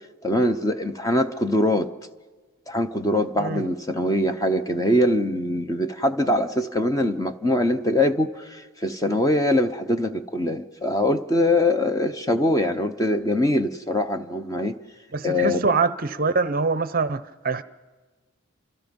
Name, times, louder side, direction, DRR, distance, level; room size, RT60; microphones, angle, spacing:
voice 1, 0.2-1.9 2.7-14.8 15.2-15.6, left 1 dB, 15° left, 0.7 m, -23 dB
voice 2, 15.1-17.6, right 4 dB, 40° right, 0.6 m, -24 dB
29.5 x 27.0 x 5.3 m
head